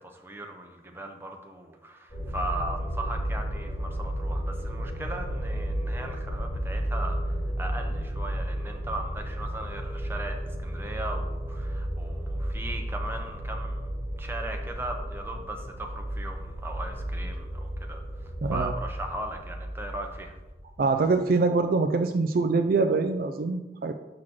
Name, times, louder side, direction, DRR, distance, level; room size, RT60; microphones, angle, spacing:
voice 1, 0.0-13.9 14.2-18.0 18.5-20.4, right 1 dB, 15° right, 3 dB, 0.7 m, -38 dB
sound 1, 2.1-21.0, equal, 35° left, 2.5 m, -33 dB
voice 2, 18.4-18.7 20.8-23.9, right 3 dB, 55° right, 6 dB, 0.4 m, -24 dB
6.0 x 3.8 x 6.1 m, 1.1 s
head